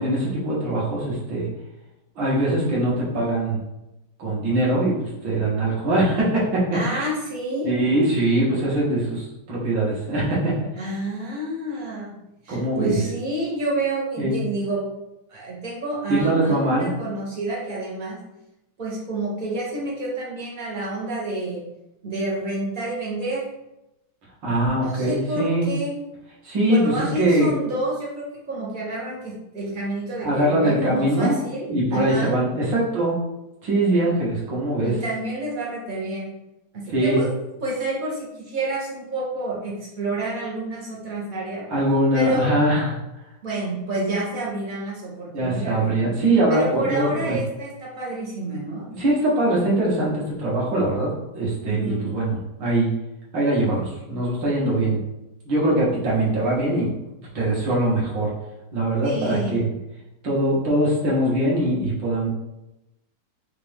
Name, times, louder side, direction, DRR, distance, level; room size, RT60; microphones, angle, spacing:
voice 1, 0.0-1.5 2.2-3.6 4.2-5.0 5.2-6.6 6.9-7.0 7.6-10.5 12.5-13.0 14.2-14.4 16.1-16.9 24.4-25.7 26.4-27.5 30.2-31.4 31.7-33.2 33.6-34.9 36.9-37.2 41.7-42.9 45.3-47.4 48.9-51.1 51.3-52.9 53.3-55.0 55.5-56.9 57.2-58.3 58.7-59.7 60.2-62.3, right 1 dB, 60° right, -5 dB, 2.0 m, -22 dB
voice 2, 6.7-7.7 10.8-12.1 12.4-14.9 15.3-18.2 18.8-21.6 22.0-23.4 24.7-25.9 26.7-32.4 34.8-36.3 36.7-41.6 42.0-42.5 43.4-45.9 46.5-48.9 51.7-52.1 59.0-59.7, right 2 dB, 85° right, -6 dB, 0.4 m, -29 dB
5.1 x 2.5 x 3.4 m, 0.92 s
omnidirectional pair, 2.4 m